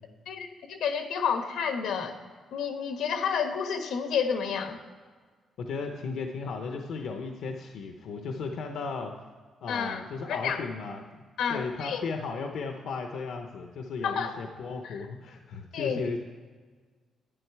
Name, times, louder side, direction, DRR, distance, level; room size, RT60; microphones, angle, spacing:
voice 1, 0.3-2.1 2.5-4.8 9.7-10.0 10.3-10.6 11.4-12.0 14.0-14.4 14.8-15.0 15.7-16.0, left 7 dB, 85° left, 6 dB, 1.2 m, -30 dB
voice 2, 5.6-9.3 9.6-11.2 11.5-16.2, left 4 dB, 70° left, 4 dB, 0.7 m, -35 dB
11.0 x 9.7 x 4.6 m, 1.5 s
cardioid pair, 175°, 0 cm